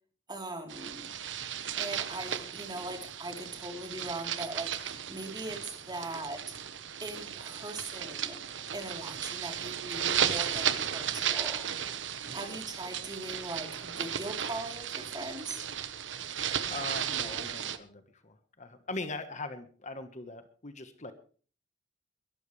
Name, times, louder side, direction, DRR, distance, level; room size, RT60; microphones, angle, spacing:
voice 1, 0.3-1.1 1.8-6.4 7.0-8.4 8.7-11.7 12.3-15.6, right 2 dB, 25° right, 3 dB, 3.7 m, -40 dB
sound 1, 0.7-17.8, right 9 dB, 90° right, 1.2 m, -35 dB
voice 2, 16.7-21.1, left 3 dB, 40° left, 8 dB, 1.4 m, -41 dB
22.5 x 12.5 x 3.3 m, 0.41 s
head